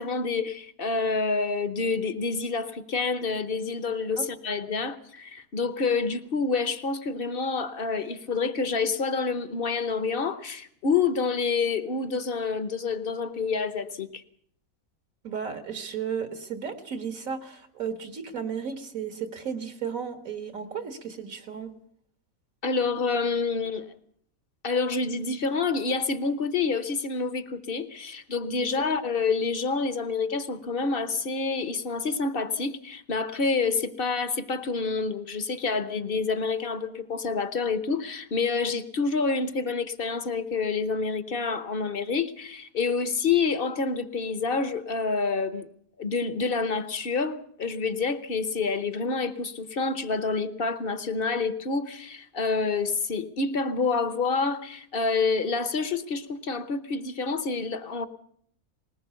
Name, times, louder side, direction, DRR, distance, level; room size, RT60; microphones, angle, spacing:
voice 1, 0.0-14.2 22.6-23.9 24.6-45.7 46.0-58.1, left 4 dB, 45° left, 1.1 m, -28 dB
voice 2, 15.2-21.7 28.8-28.9, right 7 dB, 70° right, 2.1 m, -34 dB
20.0 x 19.0 x 7.0 m
omnidirectional pair, 1.5 m